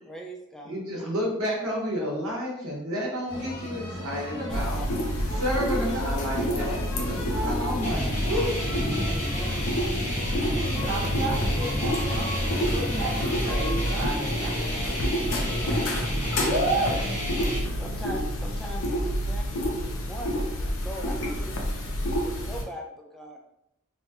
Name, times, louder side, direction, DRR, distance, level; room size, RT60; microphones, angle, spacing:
voice 1, 0.1-0.8 4.5-4.9 5.3-5.4 6.7-6.8 8.3-9.7 10.5-11.2 15.4-16.1 17.6-23.4, right 1 dB, ahead, 0 dB, 0.4 m, -41 dB
voice 2, 0.6-4.8 5.3-8.5, equal, 70° right, -3 dB, 0.9 m, -30 dB
sound 1, 3.3-16.7, equal, 90° left, 1.4 m, -35 dB
sound 2, 4.5-22.6, equal, 60° left, 0.5 m, -29 dB
sound 3, 7.8-17.6, equal, 30° left, 0.8 m, -31 dB
voice 3, 10.6-14.8 16.4-17.0 17.4-18.0, right 2 dB, 35° right, -6 dB, 0.9 m, -32 dB
2.9 x 2.2 x 2.8 m, 0.81 s
head